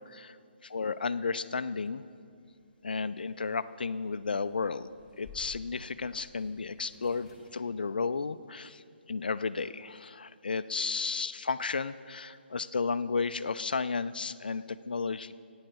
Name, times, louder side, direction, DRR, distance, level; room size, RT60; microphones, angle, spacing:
voice 1, 0.7-2.0 2.8-4.9 5.2-8.8 9.1-15.3, left 4 dB, 55° left, 15 dB, 0.3 m, -33 dB
sound 1, 2.1-7.5, left 3 dB, 5° left, 1.9 m, -54 dB
14.5 x 9.4 x 4.9 m, 2.3 s
figure-of-eight pair, 145°, 6 cm